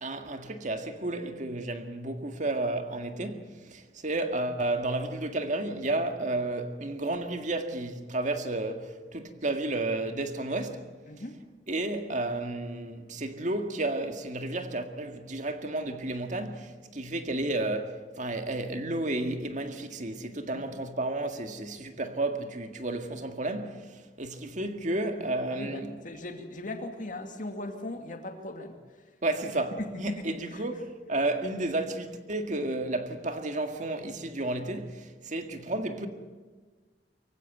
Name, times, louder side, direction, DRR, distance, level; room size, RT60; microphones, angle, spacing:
voice 1, 0.0-10.9 11.7-25.9 29.2-36.1, right 2 dB, 45° right, 1.9 m, -32 dB
voice 2, 11.1-11.4 20.5-20.6 25.5-29.2 29.8-30.7, left 1 dB, 45° left, 2.4 m, -39 dB
24.5 x 15.5 x 9.2 m
head